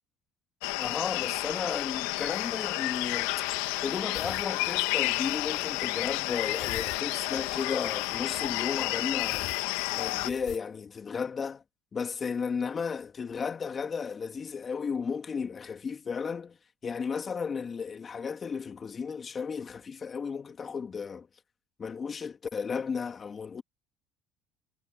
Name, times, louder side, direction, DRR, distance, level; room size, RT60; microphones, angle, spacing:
sound 1, 0.6-10.3, left 19 dB, 90° left, 1.3 m, -31 dB
voice 1, 0.8-3.3 3.8-9.5 9.9-11.6 11.9-16.6 16.8-21.3 21.8-23.6, left 6 dB, 30° left, 2.9 m, -34 dB
sound 2, 2.2-10.6, left 17 dB, 70° left, 3.1 m, -49 dB
supercardioid pair, 105°, 0 cm